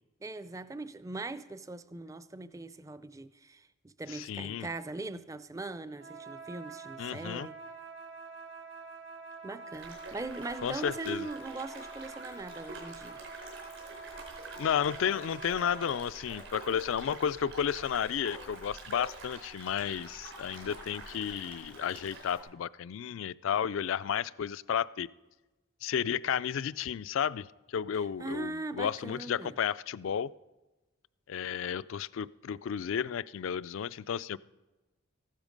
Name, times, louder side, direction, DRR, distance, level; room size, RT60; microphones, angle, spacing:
voice 1, 0.2-7.6 9.4-13.2 28.2-29.5, right 2 dB, 15° right, 0.4 m, -40 dB
voice 2, 4.1-4.7 7.0-7.5 10.6-11.3 14.6-25.1 25.8-30.3 31.3-34.4, left 8 dB, 70° left, 0.4 m, -32 dB
sound 1, 5.9-16.1, right 4 dB, 55° right, 1.1 m, -47 dB
sound 2, 9.7-22.4, right 2 dB, 75° right, 4.8 m, -47 dB
14.5 x 12.0 x 5.2 m
head